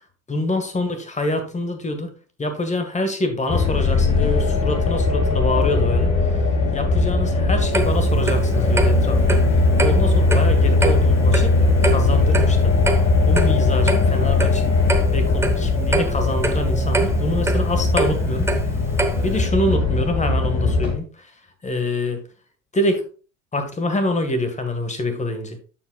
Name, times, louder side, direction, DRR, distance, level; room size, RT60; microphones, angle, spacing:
voice 1, 0.3-2.1 2.4-6.1 6.7-9.4 9.8-12.8 13.3-14.8 15.1-18.5 19.2-21.3 21.6-22.2 22.7-23.0 23.5-25.6, left 2 dB, 15° left, 7 dB, 1.6 m, -25 dB
sound 1, 3.5-20.9, left 3 dB, 35° left, 2.4 m, -19 dB
Clock, 7.7-19.5, right 3 dB, 5° right, 0.9 m, -26 dB
13.0 x 4.8 x 2.3 m, 0.38 s
figure-of-eight pair, 70°, 41 cm